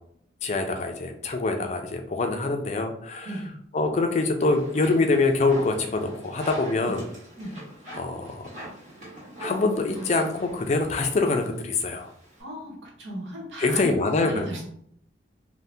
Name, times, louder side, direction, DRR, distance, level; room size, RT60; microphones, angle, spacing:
voice 1, 0.4-3.3 3.7-7.0 7.9-8.4 9.4-12.1 13.6-14.6, left 3 dB, 35° left, 4 dB, 0.3 m, -25 dB
sound 1, 4.4-12.4, right 1 dB, 40° right, 1.1 m, -42 dB
voice 2, 12.4-14.6, equal, 85° right, -2 dB, 1.0 m, -35 dB
2.7 x 2.1 x 3.3 m, 0.68 s
head